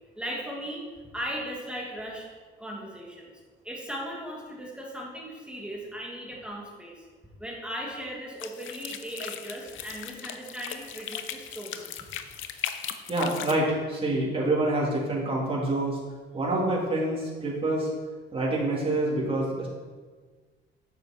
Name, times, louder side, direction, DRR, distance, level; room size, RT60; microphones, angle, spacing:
voice 1, 0.2-0.8 1.1-2.3 2.6-3.3 3.6-7.0 7.4-12.0, equal, 5° right, -2 dB, 2.3 m, -37 dB
sound 1, 8.4-13.5, left 9 dB, 75° left, 0.7 m, -38 dB
voice 2, 13.1-16.0 16.3-17.9 18.3-19.7, right 2 dB, 30° right, -5 dB, 3.0 m, -26 dB
9.4 x 7.1 x 4.4 m, 1.4 s
cardioid pair, 90°, 20 cm